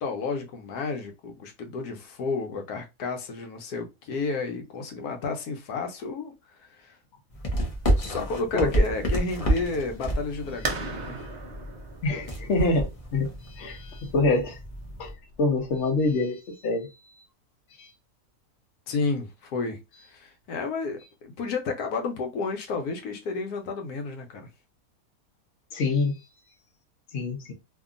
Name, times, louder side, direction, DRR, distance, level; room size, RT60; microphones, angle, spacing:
voice 1, 0.0-6.3 6.6-7.0 8.0-11.2 18.9-19.8 20.1-24.5, left 4 dB, 90° left, 1.2 m, -31 dB
sound 1, 7.3-15.1, right 1 dB, 35° left, 0.6 m, -29 dB
sound 2, 10.6-16.1, right 3 dB, 70° right, 0.4 m, -38 dB
voice 2, 12.0-14.6 15.0-15.1 15.4-16.9 17.8-17.9 25.7-26.2 27.1-27.5, left 2 dB, 55° left, 1.0 m, -26 dB
2.8 x 2.5 x 2.4 m
omnidirectional pair, 1.6 m